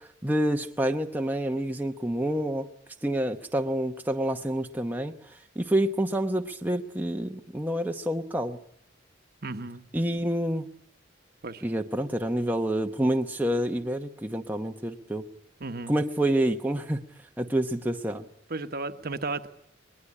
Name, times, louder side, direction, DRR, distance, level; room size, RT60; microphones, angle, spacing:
voice 1, 0.0-2.7 3.0-5.1 5.5-8.6 9.9-10.7 11.6-15.2 15.9-17.0 17.4-18.3, right 1 dB, 10° right, 4 dB, 0.9 m, -28 dB
voice 2, 9.4-9.8 11.4-11.6 15.6-15.9 18.5-19.5, right 3 dB, 50° right, 8 dB, 1.2 m, -34 dB
21.5 x 20.5 x 9.9 m, 0.69 s
head